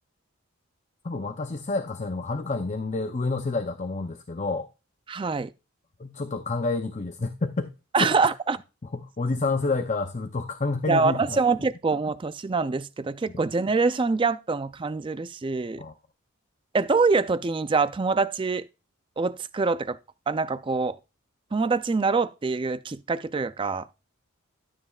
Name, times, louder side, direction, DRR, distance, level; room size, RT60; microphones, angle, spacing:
voice 1, 1.0-4.7 6.0-7.7 8.0-8.1 8.9-11.4 15.8-15.9, left 3 dB, 30° left, 0.6 m, -29 dB
voice 2, 5.1-5.5 7.9-8.6 10.9-15.8 16.7-18.7 19.2-20.0 20.3-21.0 21.5-23.9, right 4 dB, 25° right, 0.3 m, -25 dB
12.5 x 8.5 x 2.4 m
head